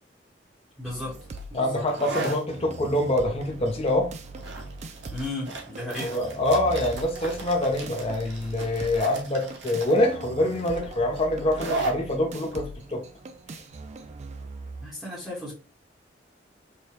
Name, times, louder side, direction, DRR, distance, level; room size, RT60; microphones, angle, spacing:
voice 1, 0.8-1.2 1.5-1.9 5.1-6.2 14.8-15.5, left 1 dB, 5° right, 1.0 m, -35 dB
sound 1, 0.8-14.9, right 2 dB, 40° right, 0.4 m, -41 dB
sound 2, 1.0-14.4, right 3 dB, 70° right, 0.9 m, -38 dB
voice 2, 1.5-4.1 6.0-13.0, left 1 dB, 35° left, 0.6 m, -25 dB
4.8 x 2.1 x 2.9 m
head